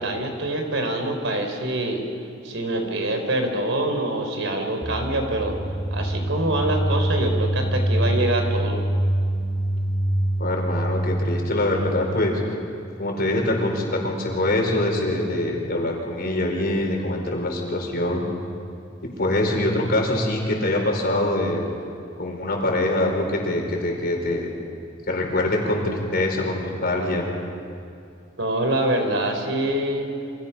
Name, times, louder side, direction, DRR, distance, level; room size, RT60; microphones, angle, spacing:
voice 1, 0.0-2.0 2.4-5.6 5.9-8.8 28.4-30.1, right 1 dB, 70° right, 4 dB, 3.9 m, -25 dB
sound 1, 4.8-12.6, right 1 dB, ahead, 1.2 m, -25 dB
voice 2, 10.4-12.4 13.0-18.3 19.0-21.7 22.2-24.5 25.1-27.3, left 1 dB, 50° left, 1 dB, 5.0 m, -24 dB
29.5 x 26.0 x 5.8 m, 2.5 s
head